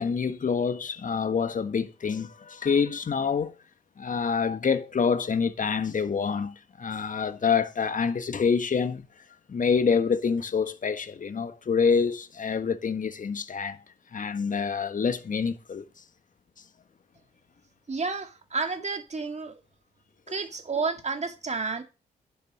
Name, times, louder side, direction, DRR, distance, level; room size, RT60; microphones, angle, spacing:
voice 1, 0.0-3.5 4.0-9.1 9.5-13.8 14.1-15.8, left 6 dB, 45° left, 1.4 m, -26 dB
voice 2, 17.9-19.6 20.3-21.8, right 4 dB, 35° right, 2.3 m, -31 dB
10.5 x 7.0 x 6.5 m
hypercardioid pair, 45°, 19 cm